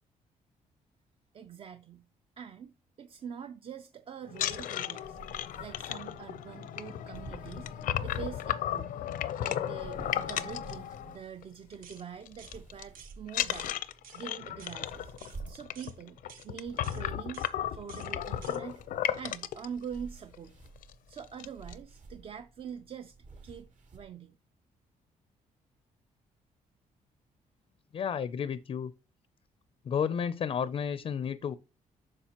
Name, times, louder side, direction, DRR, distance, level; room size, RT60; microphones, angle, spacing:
voice 1, 1.3-2.0 2.4-8.9 9.4-13.7 14.1-15.1 15.5-16.2 16.4-18.8 19.2-20.5 21.1-23.1 23.4-23.7 23.9-24.3, right 7 dB, 40° right, 0.5 m, -44 dB
sound 1, 4.3-11.4 11.7-12.0 12.3-12.8 13.3-19.7 20.3-20.4 20.8-20.9 21.2-21.7, left 11 dB, 80° left, 0.6 m, -35 dB
sound 2, 5.0-24.0, right 4 dB, 65° right, 2.3 m, -52 dB
sound 3, 11.8-12.0 12.4-12.6 12.9-13.2 13.5-13.7 14.0-14.2 14.6-14.8 15.2-15.4 15.8-16.0 16.3-16.5 16.8-17.0 17.3-17.5 17.9-18.1 18.4-18.6, right 7 dB, 85° right, 1.1 m, -52 dB
voice 2, 27.9-28.9 29.8-31.5, left 7 dB, 40° left, 0.4 m, -32 dB
9.9 x 6.4 x 2.9 m
cardioid pair, 135°, 14 cm